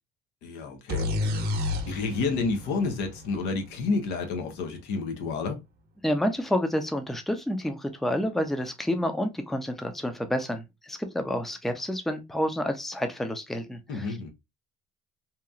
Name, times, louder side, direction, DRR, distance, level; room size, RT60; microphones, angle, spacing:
voice 1, 0.4-1.5 1.9-5.6 13.9-14.3, left 4 dB, 90° left, 0.7 m, -30 dB
sound 1, 0.9-4.6, left 2 dB, 70° right, 0.7 m, -31 dB
voice 2, 6.0-14.2, equal, ahead, 0.4 m, -29 dB
2.9 x 2.3 x 2.3 m
cardioid pair, 110°, 17 cm